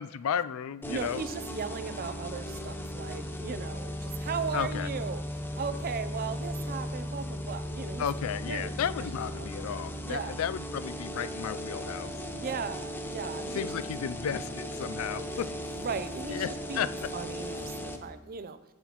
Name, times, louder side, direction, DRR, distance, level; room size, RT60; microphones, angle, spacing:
voice 1, 0.0-1.2 4.5-4.9 8.0-12.1 13.5-15.5 16.3-16.9, left 8 dB, 80° left, 15 dB, 0.3 m, -33 dB
sound 1, 0.8-18.0, equal, 10° left, 0.6 m, -37 dB
voice 2, 0.9-8.1 8.4-8.7 9.3-9.5 10.0-10.4 12.3-13.7 14.9-18.6, right 5 dB, 45° right, 13 dB, 0.5 m, -37 dB
15.0 x 5.6 x 3.0 m, 1.1 s
head